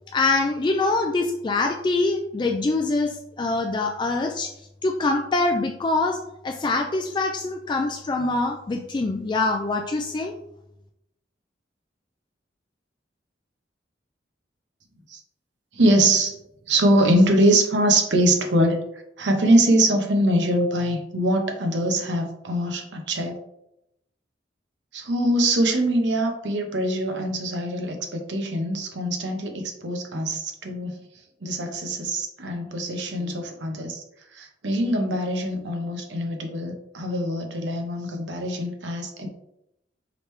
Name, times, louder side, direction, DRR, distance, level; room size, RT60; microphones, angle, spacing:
voice 1, 0.1-10.3, left 3 dB, 25° left, 3 dB, 0.3 m, -24 dB
voice 2, 15.7-16.4 16.7-18.8 19.2-23.4 24.9-31.0 31.4-34.0 34.3-39.3, right 1 dB, 75° right, 3 dB, 0.8 m, -23 dB
5.0 x 3.2 x 3.1 m, 0.81 s
head